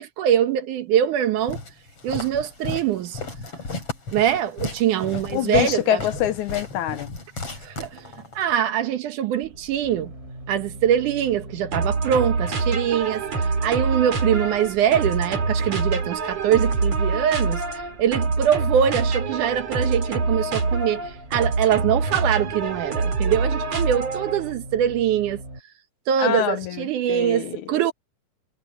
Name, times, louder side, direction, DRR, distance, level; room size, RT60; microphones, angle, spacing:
voice 1, 0.0-1.6 2.0-3.2 4.1-6.0 7.6-7.9 8.4-10.1 10.5-13.2 13.6-17.6 18.0-21.0 21.3-25.4 26.1-27.9, right 10 dB, 70° right, 2.5 m, -23 dB
Walk footsteps, 1.5-8.4, left 3 dB, 45° left, 6.8 m, -34 dB
voice 2, 5.3-7.1 26.2-26.8 27.1-27.6, left 12 dB, 70° left, 2.1 m, -25 dB
sound 1, 9.4-25.6, right 1 dB, 20° right, 5.9 m, -43 dB
sound 2, 11.7-24.5, right 4 dB, 50° right, 4.9 m, -25 dB
omnidirectional pair, 3.8 m